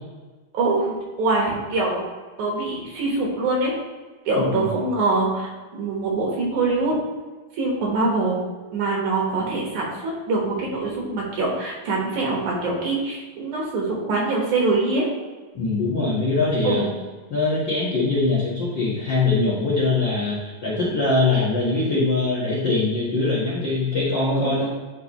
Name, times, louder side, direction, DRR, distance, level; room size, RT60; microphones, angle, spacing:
voice 1, 0.5-2.0 2.4-3.8 4.3-6.9 7.6-8.4 8.7-9.9 10.3-15.1 16.6-16.9 24.3-24.7, right 3 dB, 60° right, -2 dB, 2.4 m, -24 dB
voice 2, 4.4-4.7 15.5-16.8 17.3-24.7, left 3 dB, 85° left, -7 dB, 1.0 m, -22 dB
10.0 x 4.1 x 3.0 m, 1.3 s
omnidirectional pair, 4.3 m